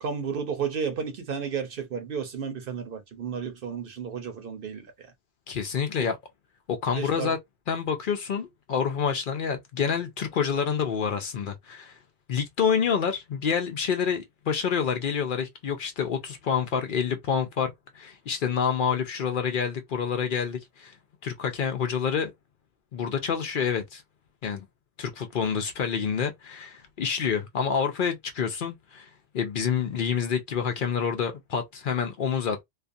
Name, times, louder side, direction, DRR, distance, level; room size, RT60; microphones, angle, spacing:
voice 1, 0.0-4.9 6.0-6.1 6.9-7.3, right 6 dB, 60° right, 0.8 m, -32 dB
voice 2, 5.5-6.2 6.7-7.4 7.7-12.0 12.3-20.9 21.2-22.3 22.9-24.0 24.4-24.7 25.0-32.6, left 7 dB, 60° left, 0.6 m, -28 dB
2.4 x 2.3 x 2.5 m
omnidirectional pair, 1.1 m